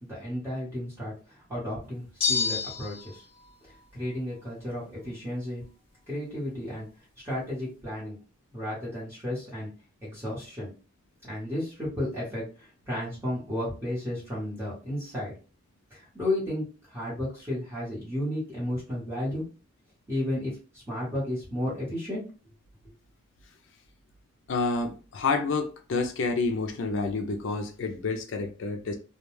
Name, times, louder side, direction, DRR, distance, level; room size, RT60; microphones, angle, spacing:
voice 1, 0.0-1.1 1.5-3.2 3.9-5.6 6.1-6.9 7.2-8.2 8.5-9.7 10.0-10.7 11.2-15.3 15.9-19.4 20.1-22.2, left 1 dB, 10° right, -8 dB, 1.1 m, -33 dB
sound 1, 2.2-3.2, left 5 dB, 25° left, 0.7 m, -28 dB
voice 2, 24.5-28.9, left 3 dB, 60° left, 4 dB, 0.4 m, -29 dB
2.3 x 2.2 x 3.0 m, 0.35 s
head